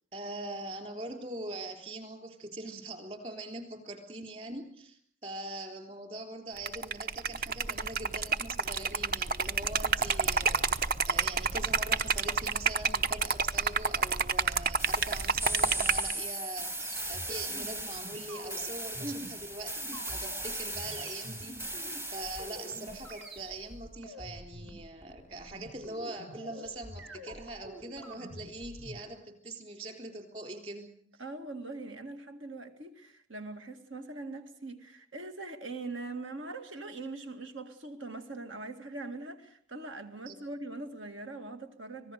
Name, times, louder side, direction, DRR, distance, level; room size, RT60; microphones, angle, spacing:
voice 1, 0.1-21.8 22.1-30.9 40.2-40.4, right 2 dB, 35° right, 3.7 m, -42 dB
Liquid, 6.6-16.1, right 5 dB, 50° right, 0.8 m, -29 dB
sound 1, 14.8-23.2, right 2 dB, 10° right, 0.8 m, -38 dB
sound 2, 16.8-29.0, equal, 70° right, 6.1 m, -47 dB
voice 2, 19.0-19.3 31.2-42.1, right 2 dB, 90° right, 2.2 m, -42 dB
25.5 x 19.0 x 6.7 m
head